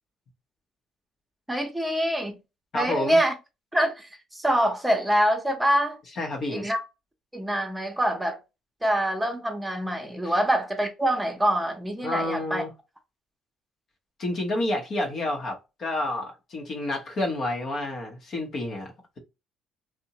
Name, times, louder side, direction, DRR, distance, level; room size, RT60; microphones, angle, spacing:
voice 1, 1.5-2.4 2.7-3.3 3.7-6.0 6.5-6.8 7.3-8.4 8.8-12.6, equal, 10° right, 0.8 m, -25 dB
voice 2, 2.7-3.2 6.2-6.6 10.2-10.3 12.0-12.7 14.2-19.2, left 1 dB, 55° left, 0.8 m, -29 dB
2.7 x 2.1 x 2.8 m
supercardioid pair, 65°, 0 cm